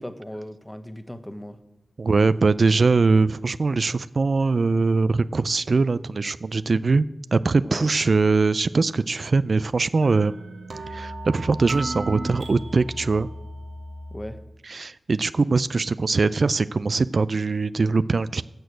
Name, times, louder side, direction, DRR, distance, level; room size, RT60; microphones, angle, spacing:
voice 1, 0.0-1.6 7.6-7.9 14.1-14.4, equal, 10° left, 10 dB, 0.9 m, -37 dB
voice 2, 2.0-7.0 7.3-10.4 10.9-13.3 14.7-18.4, right 4 dB, 55° right, 15 dB, 0.3 m, -22 dB
sound 1, 10.0-14.4, right 1 dB, 80° right, 1.6 m, -35 dB
11.0 x 6.5 x 8.0 m, 1.1 s
wide cardioid pair, 70°, 0 cm